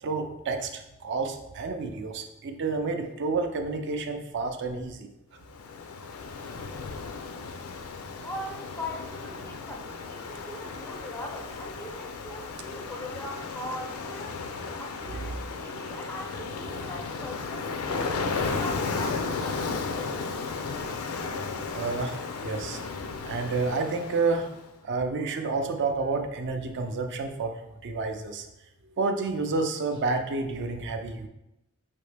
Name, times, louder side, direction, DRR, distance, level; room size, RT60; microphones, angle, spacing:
voice 1, 0.0-5.1 15.1-15.2 16.5-16.6 17.6-18.4 21.7-22.8 23.2-24.5 24.8-27.5 27.8-28.5 28.8-31.3, right 3 dB, 55° right, 5 dB, 0.5 m, -30 dB
Ocean, 5.5-24.6, left 4 dB, 70° left, 0.4 m, -34 dB
voice 2, 8.2-14.4 14.7-17.7 18.2-20.2, left 1 dB, 10° left, 2 dB, 0.4 m, -41 dB
5.1 x 2.8 x 3.3 m, 0.90 s
head